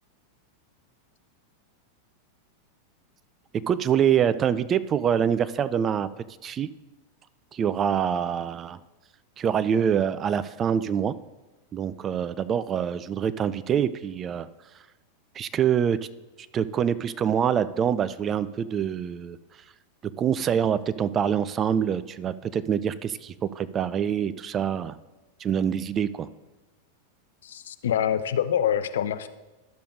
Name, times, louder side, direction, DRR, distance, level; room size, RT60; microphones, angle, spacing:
voice 1, 3.5-6.1 6.4-6.7 7.5-8.8 9.4-11.1 11.7-14.5 15.4-16.0 16.5-19.4 20.0-25.0 25.4-26.3, right 8 dB, 25° right, 15 dB, 0.3 m, -25 dB
voice 2, 27.4-29.3, left 9 dB, 60° left, 12 dB, 0.4 m, -25 dB
12.0 x 6.6 x 2.6 m, 1.1 s
figure-of-eight pair, 90°, 0 cm